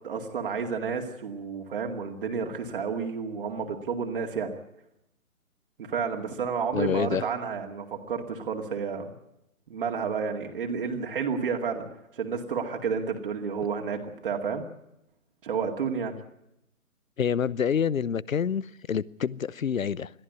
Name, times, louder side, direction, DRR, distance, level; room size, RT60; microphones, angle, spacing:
voice 1, 0.0-4.5 5.9-9.1 9.7-11.9 12.1-14.6 15.4-16.1, right 6 dB, 40° right, 2.3 m, -31 dB
voice 2, 6.7-7.3 17.2-20.1, left 7 dB, 65° left, 0.9 m, -27 dB
22.0 x 14.0 x 9.5 m
figure-of-eight pair, 150°, 43 cm